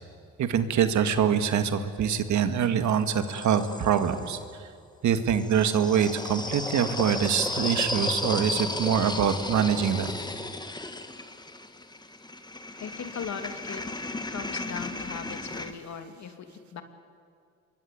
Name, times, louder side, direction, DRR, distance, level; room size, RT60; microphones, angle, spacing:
voice 1, 0.4-4.7 5.0-10.2, right 8 dB, 70° right, 9 dB, 2.0 m, -25 dB
sound 1, 2.0-4.5 5.3-15.7, left 2 dB, 15° left, 1.9 m, -34 dB
voice 2, 12.8-13.8 14.3-16.8, left 7 dB, 65° left, 7 dB, 2.7 m, -38 dB
26.5 x 22.0 x 8.6 m, 2.2 s
cardioid pair, 90°, 30 cm